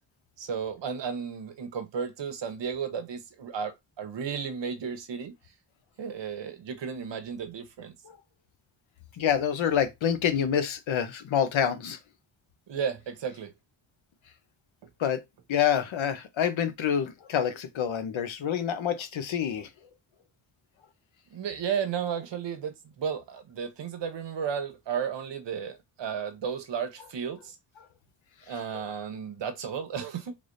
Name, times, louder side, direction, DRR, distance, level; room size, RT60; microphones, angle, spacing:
voice 1, 0.4-5.3 6.0-7.9 12.7-13.5 21.3-27.6 28.5-30.4, right 7 dB, 60° right, 0.9 m, -33 dB
voice 2, 9.2-12.0 15.0-15.2 15.5-19.7 28.7-28.8, left 8 dB, 70° left, 0.9 m, -27 dB
3.6 x 3.3 x 2.6 m
cardioid pair, 75°, 48 cm